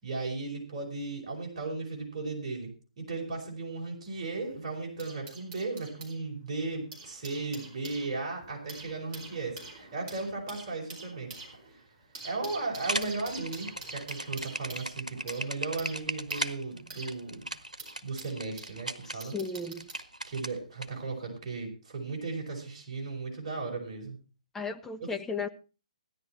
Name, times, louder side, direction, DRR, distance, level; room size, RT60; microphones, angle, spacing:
voice 1, 0.0-2.7 3.0-11.3 11.7-11.8 12.2-17.5 18.0-19.3 20.3-24.2, right 3 dB, 40° right, 0 dB, 5.3 m, -36 dB
sound 1, 4.1-6.2 6.7-18.8 19.2-20.1 21.0-21.2, right 3 dB, 25° right, 4.9 m, -47 dB
sound 2, 12.7-20.9, right 1 dB, 85° right, 1.2 m, -37 dB
voice 2, 19.1-19.9 24.5-25.5, left 4 dB, 5° left, 7 dB, 0.8 m, -35 dB
16.5 x 10.5 x 4.4 m, 0.34 s
figure-of-eight pair, 130°, 4 cm